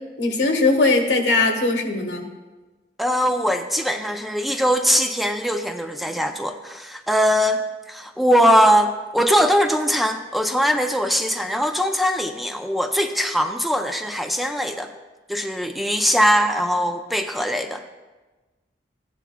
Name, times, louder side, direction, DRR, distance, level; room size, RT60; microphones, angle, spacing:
voice 1, 0.2-2.2, left 3 dB, 85° left, 4 dB, 1.3 m, -20 dB
voice 2, 3.0-14.9 15.3-17.8, equal, ahead, 5 dB, 0.4 m, -21 dB
15.0 x 9.8 x 2.2 m, 1.2 s
head